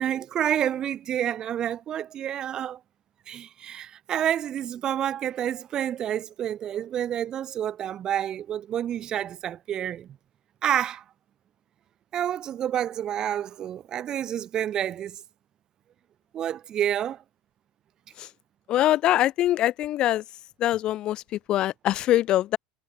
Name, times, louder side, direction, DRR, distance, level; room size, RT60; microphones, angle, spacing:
voice 1, 0.0-2.8 3.3-10.1 10.6-11.0 12.1-15.2 16.3-17.2, right 10 dB, 35° right, 1.2 m, -29 dB
voice 2, 18.7-20.2 20.6-22.6, left 13 dB, 45° left, 3.0 m, -23 dB
supercardioid pair, 130°, 2 cm